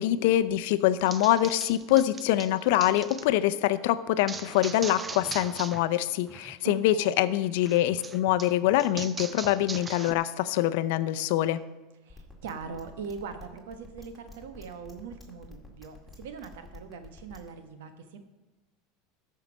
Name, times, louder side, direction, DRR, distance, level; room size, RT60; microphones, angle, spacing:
voice 1, 0.0-11.6, left 13 dB, 70° left, 13 dB, 0.5 m, -25 dB
sound 1, 1.1-3.2 4.3-5.8 6.1-6.6 7.6-10.1, right 4 dB, 20° right, 0.5 m, -40 dB
voice 2, 6.6-7.2 12.0-18.2, right 5 dB, 85° right, 8 dB, 1.2 m, -41 dB
sound 2, 12.1-17.5, left 3 dB, ahead, 2.3 m, -48 dB
13.0 x 5.6 x 5.3 m, 1.1 s
supercardioid pair, 120°, 0 cm